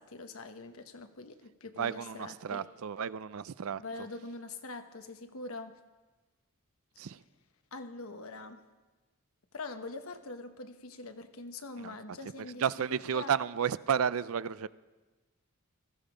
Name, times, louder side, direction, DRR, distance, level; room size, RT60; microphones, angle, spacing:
voice 1, 0.0-2.7 3.8-5.8 7.7-8.6 9.5-12.6 12.9-13.3, left 3 dB, 65° left, 7 dB, 1.1 m, -44 dB
voice 2, 1.8-3.8 7.0-7.2 11.8-11.9 12.6-14.7, right 7 dB, 70° right, 17 dB, 0.4 m, -32 dB
18.5 x 13.5 x 5.0 m, 1.2 s
head